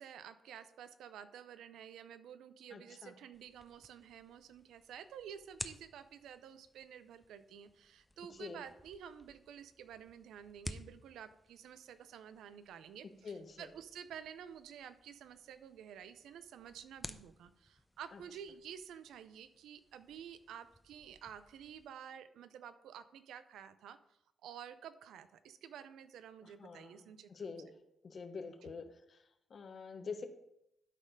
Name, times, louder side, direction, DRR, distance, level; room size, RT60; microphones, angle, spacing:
voice 1, 0.0-24.0 24.4-27.5 28.6-28.9, right 8 dB, 85° right, 13 dB, 0.5 m, -51 dB
voice 2, 2.7-3.1 8.4-8.6 13.2-13.7 26.6-26.9 27.3-27.7 28.0-29.2 29.5-30.3, left 5 dB, 55° left, 6 dB, 1.1 m, -46 dB
sound 1, 3.3-21.9, left 1 dB, 15° left, 0.7 m, -54 dB
11.5 x 4.2 x 5.2 m, 0.82 s
supercardioid pair, 60°, 0 cm